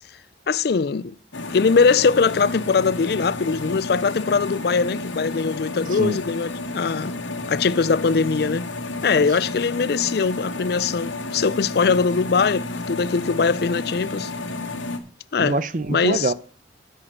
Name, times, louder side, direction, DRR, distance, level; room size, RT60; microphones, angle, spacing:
voice 1, 0.5-1.2 1.5-7.2 7.5-8.7 9.0-14.3 15.3-15.6 15.9-16.3, left 5 dB, 55° left, 0.4 m, -21 dB
sound 1, 1.3-15.0, left 2 dB, 90° left, 1.7 m, -31 dB
voice 2, 15.4-16.3, right 2 dB, 45° right, 0.6 m, -24 dB
13.5 x 6.3 x 6.5 m
head